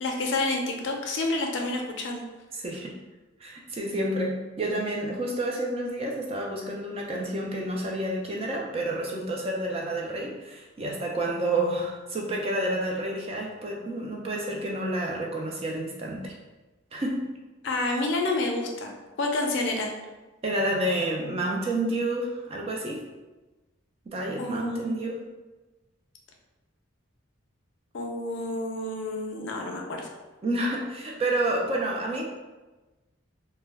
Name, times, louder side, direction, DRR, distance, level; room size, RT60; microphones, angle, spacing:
voice 1, 0.0-2.2 17.6-19.9 24.4-25.0 27.9-30.1, left 2 dB, 60° left, 2 dB, 0.4 m, -29 dB
voice 2, 2.5-2.9 3.4-16.3 16.9-17.2 20.4-23.0 24.1-25.2 30.4-32.2, right 1 dB, 30° right, -1 dB, 0.3 m, -29 dB
2.2 x 2.1 x 3.3 m, 1.1 s
head